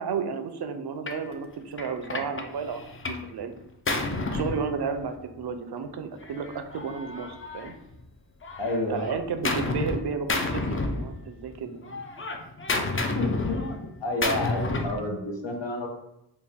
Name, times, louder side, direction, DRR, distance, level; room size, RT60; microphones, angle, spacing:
voice 1, 0.0-3.6 4.2-7.7 8.9-12.0, right 5 dB, 65° right, 8 dB, 0.5 m, -33 dB
Gunshot gunfire, 1.1-1.3 1.8-3.3 3.6-5.3 6.2-8.1 8.4-10.0 10.3-11.5 11.8-15.0, left 2 dB, 30° left, 0.4 m, -31 dB
voice 2, 8.6-9.0 13.2-13.7 14.0-15.9, left 2 dB, 85° left, 1 dB, 0.8 m, -29 dB
4.0 x 2.2 x 3.5 m, 0.83 s
wide cardioid pair, 55°, 42 cm